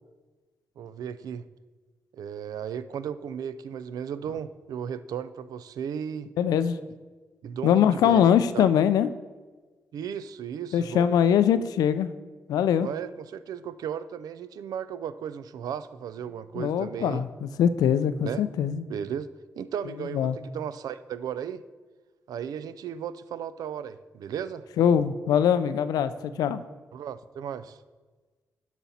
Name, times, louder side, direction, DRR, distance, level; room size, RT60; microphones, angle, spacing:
voice 1, 0.8-1.5 2.1-6.3 7.4-8.2 8.5-8.7 9.9-11.2 12.8-17.2 18.2-18.4 18.9-19.3 19.6-21.6 22.3-24.7 26.9-27.8, right 8 dB, 80° right, 14 dB, 0.4 m, -35 dB
voice 2, 6.4-6.8 7.6-9.1 10.7-12.1 12.5-12.9 16.6-18.8 20.1-20.4 24.8-26.6, left 9 dB, 90° left, 13 dB, 0.4 m, -22 dB
12.0 x 4.1 x 4.1 m, 1.3 s
cardioid pair, 55°, 6 cm